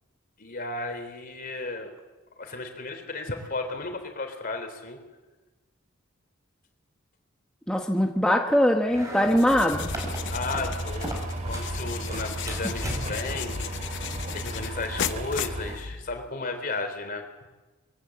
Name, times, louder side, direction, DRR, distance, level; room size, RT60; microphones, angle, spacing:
voice 1, 0.4-1.9 2.4-5.0 10.3-11.2 11.5-17.2, left 3 dB, 45° left, 6 dB, 3.5 m, -34 dB
voice 2, 7.7-9.9, equal, 5° left, 1 dB, 1.2 m, -22 dB
sound 1, 8.9-11.8 12.1-13.4, equal, 15° right, 4.6 m, -36 dB
sound 2, 9.3-16.3, left 7 dB, 60° left, 0.8 m, -36 dB
sound 3, 9.7-15.8, right 1 dB, 40° right, 2.4 m, -35 dB
23.0 x 16.0 x 7.8 m, 1.2 s
head